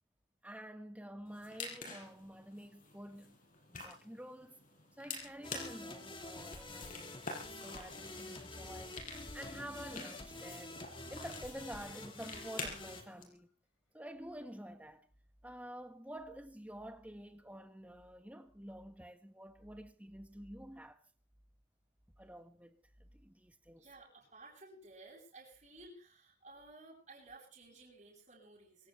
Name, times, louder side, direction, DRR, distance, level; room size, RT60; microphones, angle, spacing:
voice 1, 0.4-3.4 3.7-4.6 5.0-10.7 11.1-13.5 13.9-15.1 15.4-21.0 22.2-23.8, right 1 dB, 5° right, 1.4 m, -49 dB
sound 1, 1.3-13.2, left 4 dB, 45° left, 5.6 m, -49 dB
sound 2, 5.4-13.0, left 2 dB, 25° left, 2.7 m, -48 dB
sound 3, 9.4-13.5, left 2 dB, 85° left, 4.6 m, -64 dB
voice 2, 23.8-28.9, right 2 dB, 35° right, 7.9 m, -56 dB
25.0 x 16.5 x 3.4 m
head